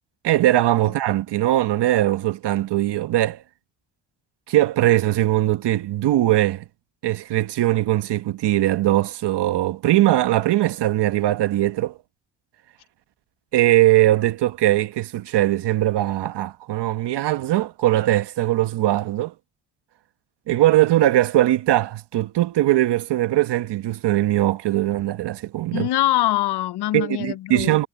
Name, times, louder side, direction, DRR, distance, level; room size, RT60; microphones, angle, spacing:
voice 1, 0.2-3.4 4.5-6.6 7.0-11.9 13.5-19.3 20.5-25.9 26.9-27.9, right 14 dB, 65° right, 1.2 m, -20 dB
voice 2, 25.7-27.9, left 14 dB, 65° left, 0.7 m, -23 dB
cardioid pair, 100°, 44 cm